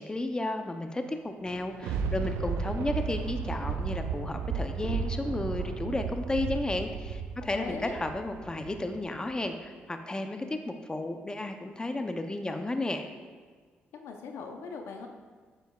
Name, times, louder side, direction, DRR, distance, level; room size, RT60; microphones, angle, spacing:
voice 1, 0.0-13.1, left 2 dB, 20° left, 6 dB, 0.6 m, -33 dB
Thunder, 1.4-9.0 9.4-9.5, right 5 dB, 90° right, 0.4 m, -34 dB
voice 2, 7.5-8.0 13.9-15.1, left 4 dB, 80° left, 4 dB, 0.7 m, -40 dB
7.9 x 6.8 x 2.3 m, 1.5 s
supercardioid pair, 65°, 4 cm